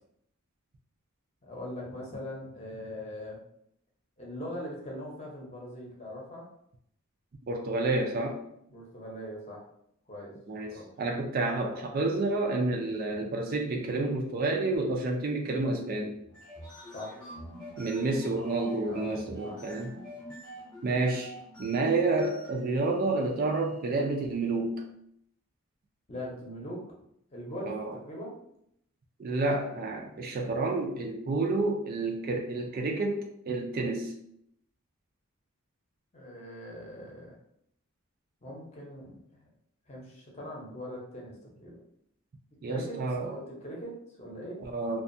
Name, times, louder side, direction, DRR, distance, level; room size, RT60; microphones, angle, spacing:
voice 1, 1.4-3.4 4.2-6.5 8.7-9.6 10.1-10.3 10.7-10.9 16.9-17.2 18.9-19.6 26.1-26.8 27.3-28.4 36.1-37.3 38.4-39.2 39.9-41.8 42.7-44.6, equal, 30° left, -3 dB, 0.7 m, -41 dB
voice 2, 7.5-8.4 10.5-16.2 17.8-19.9 20.8-21.3 21.6-24.7 27.7-27.9 29.2-34.1 42.6-43.3 44.6-45.0, right 2 dB, 45° right, 2 dB, 0.4 m, -29 dB
sound 1, 16.2-24.5, equal, 5° left, 0.8 m, -47 dB
2.6 x 2.4 x 2.6 m, 0.72 s
head